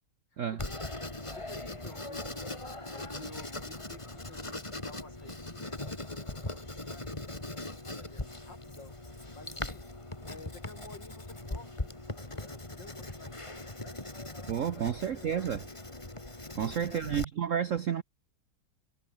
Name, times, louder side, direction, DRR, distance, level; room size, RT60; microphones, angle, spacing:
voice 1, 0.3-0.7 1.1-2.5 2.9-7.4 7.7-8.9 9.3-9.9 10.2-14.2 14.7-14.9 15.1-15.8 16.6-17.2, left 3 dB, 60° left, 5.5 m, -53 dB
Writing, 0.6-17.2, left 2 dB, 15° left, 2.4 m, -40 dB
voice 2, 14.5-15.7 16.5-18.0, right 8 dB, 60° right, 0.8 m, -31 dB
omnidirectional pair, 2.2 m